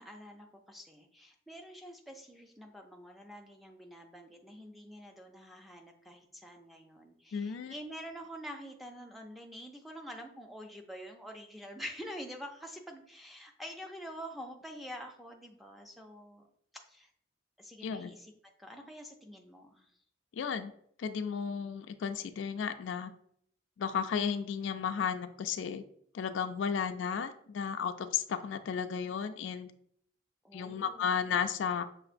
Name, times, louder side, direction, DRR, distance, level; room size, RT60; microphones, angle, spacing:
voice 1, 0.0-16.5 16.9-17.1 17.6-18.3 18.6-20.0 30.4-31.1, equal, ahead, 1 dB, 0.4 m, -47 dB
voice 2, 7.3-7.7 17.8-18.1 20.3-20.7 21.0-23.1 23.8-25.8 26.1-29.7 30.5-31.8, left 7 dB, 80° left, 10 dB, 0.3 m, -34 dB
6.3 x 2.4 x 2.5 m, 0.67 s
head